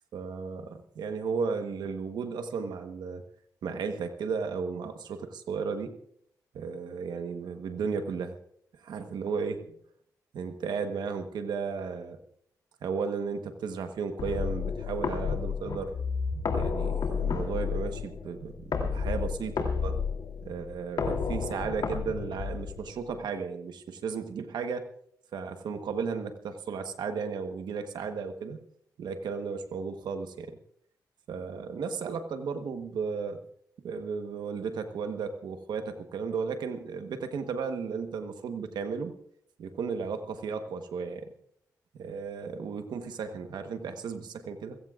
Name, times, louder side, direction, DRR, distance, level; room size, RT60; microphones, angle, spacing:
voice 1, 0.1-3.2 3.6-6.0 6.5-8.4 8.8-9.6 10.3-12.2 12.8-15.9 16.5-20.0 20.4-24.9 25.3-28.6 29.0-30.6 31.3-33.4 33.8-39.1 39.6-41.3 41.9-44.8, right 5 dB, 85° right, 7 dB, 1.2 m, -34 dB
sound 1, 14.2-23.2, left 5 dB, 75° left, 3.1 m, -31 dB
28.0 x 15.5 x 2.5 m, 0.67 s
cardioid pair, 70°, 7 cm